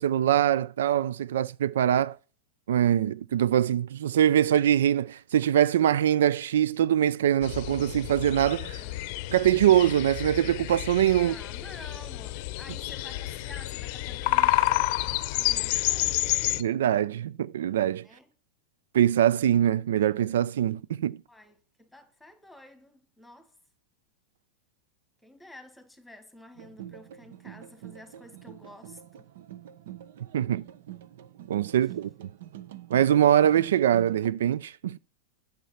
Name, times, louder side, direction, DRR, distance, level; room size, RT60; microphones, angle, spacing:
voice 1, 0.0-2.2 2.7-8.8 9.3-11.3 16.6-18.0 18.9-21.2 30.3-30.6 31.5-32.1 32.9-35.0, right 10 dB, 85° right, 0.4 m, -23 dB
sound 1, 7.4-16.6, left 17 dB, 50° left, 0.6 m, -29 dB
voice 2, 8.8-9.1 11.1-16.4 18.0-18.3 21.3-23.6 25.2-29.3 31.8-31.9, left 1 dB, ahead, 1.7 m, -50 dB
sound 2, 26.6-34.3, right 11 dB, 70° right, 0.9 m, -45 dB
9.5 x 6.8 x 5.7 m
supercardioid pair, 150°, 0 cm